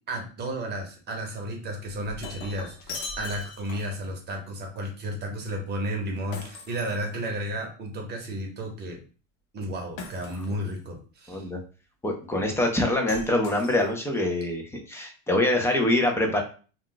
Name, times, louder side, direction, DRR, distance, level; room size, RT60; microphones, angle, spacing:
voice 1, 0.1-9.0 9.5-11.5, right 1 dB, 25° right, 1 dB, 0.8 m, -33 dB
Shatter, 1.8-4.1 6.3-7.6 10.0-10.8 13.1-14.2, left 3 dB, 75° left, 0.9 m, -40 dB
voice 2, 11.3-11.6 12.0-16.4, left 1 dB, 5° left, 2 dB, 0.3 m, -24 dB
2.3 x 2.2 x 3.8 m, 0.38 s
supercardioid pair, 130°, 37 cm